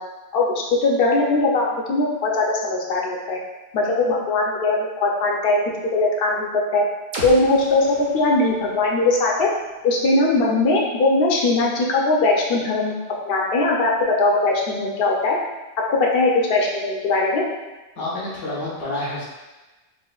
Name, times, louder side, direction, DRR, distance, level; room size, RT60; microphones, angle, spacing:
voice 1, 0.3-3.4 3.7-5.6 5.9-6.9 7.2-9.5 9.8-12.9 13.2-15.4 15.9-17.4, left 2 dB, 60° left, -2 dB, 0.8 m, -20 dB
sound 1, 7.1-11.0, right 1 dB, 50° right, 0.7 m, -38 dB
voice 2, 18.0-19.3, left 2 dB, 80° left, -9 dB, 1.1 m, -28 dB
4.2 x 2.5 x 2.3 m, 1.1 s
omnidirectional pair, 1.2 m